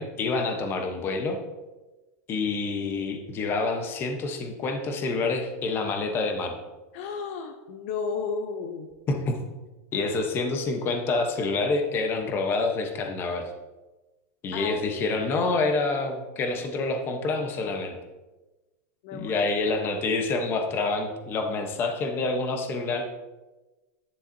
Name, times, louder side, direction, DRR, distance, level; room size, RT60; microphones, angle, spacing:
voice 1, 0.0-1.4 2.3-6.6 9.1-9.4 9.9-13.5 14.4-18.0 19.1-23.0, left 3 dB, 25° left, 5 dB, 0.9 m, -27 dB
voice 2, 6.9-8.9 14.5-14.8 19.0-19.5, left 5 dB, 55° left, 7 dB, 0.6 m, -33 dB
10.0 x 7.3 x 2.7 m, 1.1 s
supercardioid pair, 160°, 9 cm